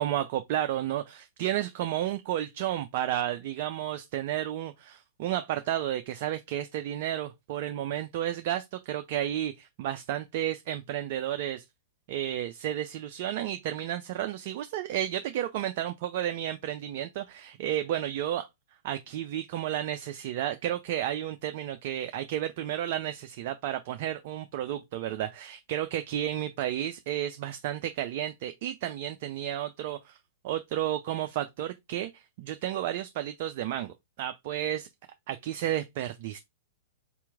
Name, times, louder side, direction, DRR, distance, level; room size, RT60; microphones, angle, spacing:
voice 1, 0.0-11.6 12.1-18.5 18.8-30.2 30.4-34.9 35.3-36.4, right 12 dB, 50° right, 0.4 m, -32 dB
4.1 x 3.0 x 3.4 m
figure-of-eight pair, 105°, 0 cm